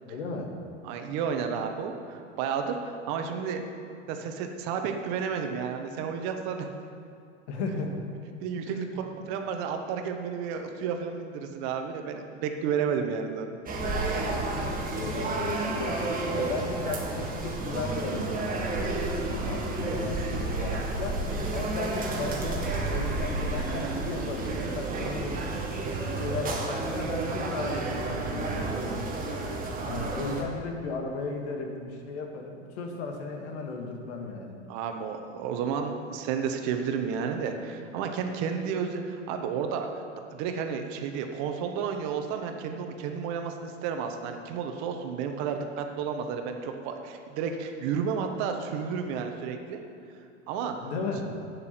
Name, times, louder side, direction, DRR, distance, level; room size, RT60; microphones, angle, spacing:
voice 1, 0.1-0.5 7.5-7.9 8.7-9.3 14.5-18.9 19.3-25.5 26.0-29.0 29.9-34.6 50.8-51.3, left 3 dB, 65° left, 3 dB, 1.9 m, -35 dB
voice 2, 0.8-3.7 4.1-6.7 8.4-13.6 24.9-25.1 34.7-40.0 40.3-49.8 50.5-50.7, right 6 dB, 50° right, 5 dB, 1.3 m, -32 dB
sound 1, 13.7-30.4, right 3 dB, 25° right, 2.0 m, -31 dB
11.0 x 8.8 x 5.9 m, 2.6 s
hypercardioid pair, 100°, 37 cm